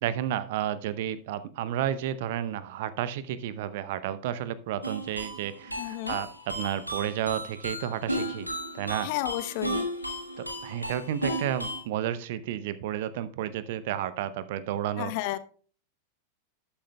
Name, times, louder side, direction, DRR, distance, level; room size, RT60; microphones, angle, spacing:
voice 1, 0.0-8.5 8.7-9.1 10.4-15.1, right 11 dB, 50° right, 15 dB, 0.6 m, -32 dB
sound 1, 4.8-11.8, equal, 90° left, 1.4 m, -34 dB
voice 2, 5.8-6.2 9.0-9.8 15.0-15.4, left 15 dB, 45° left, 14 dB, 0.7 m, -32 dB
12.0 x 8.9 x 2.2 m, 0.42 s
figure-of-eight pair, 90°, 0 cm